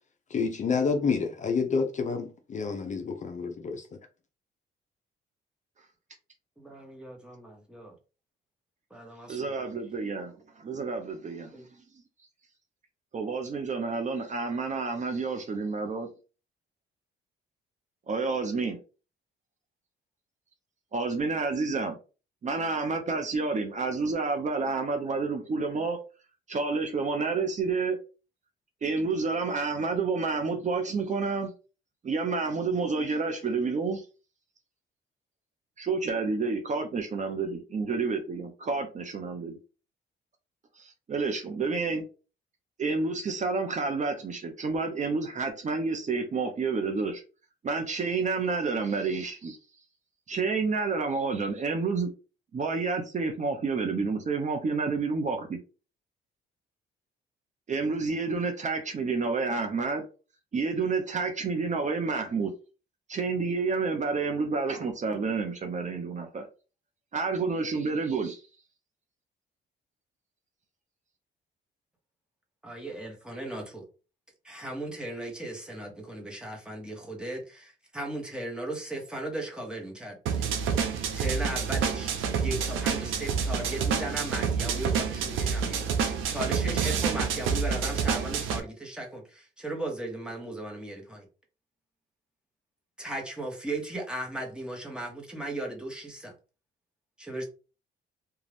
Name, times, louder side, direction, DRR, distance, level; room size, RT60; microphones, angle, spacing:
voice 1, 0.3-3.9, left 5 dB, 40° left, 0.5 m, -28 dB
voice 2, 6.6-7.9 8.9-9.7 11.5-11.7 72.6-73.9 74.4-80.5 81.1-91.3 93.0-96.3 97.2-97.4, right 1 dB, 5° right, 1.1 m, -37 dB
voice 3, 9.3-11.8 13.1-16.1 18.1-18.8 20.9-22.0 22.4-26.0 26.5-28.0 28.8-31.5 32.0-34.1 35.8-39.6 40.8-42.1 42.8-47.2 47.6-49.6 50.3-52.1 52.5-55.6 57.7-60.0 60.5-62.5 63.1-66.5 67.1-68.4, right 4 dB, 35° right, 0.6 m, -29 dB
sound 1, 80.3-88.6, right 6 dB, 85° right, 0.6 m, -28 dB
2.5 x 2.3 x 3.3 m
cardioid pair, 90°, 20 cm